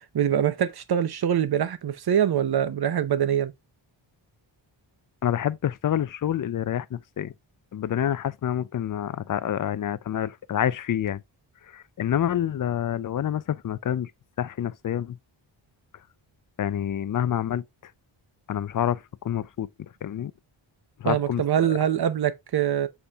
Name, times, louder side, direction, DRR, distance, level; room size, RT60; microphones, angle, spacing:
voice 1, 0.1-3.5 21.0-22.9, right 9 dB, 50° right, 0.8 m, -24 dB
voice 2, 5.2-7.3 7.7-11.2 11.7-14.1 14.4-15.2 16.6-17.6 18.5-19.7 20.0-20.3 21.0-21.7, left 10 dB, 45° left, 0.5 m, -27 dB
7.1 x 4.2 x 3.4 m
wide cardioid pair, 130°, 48 cm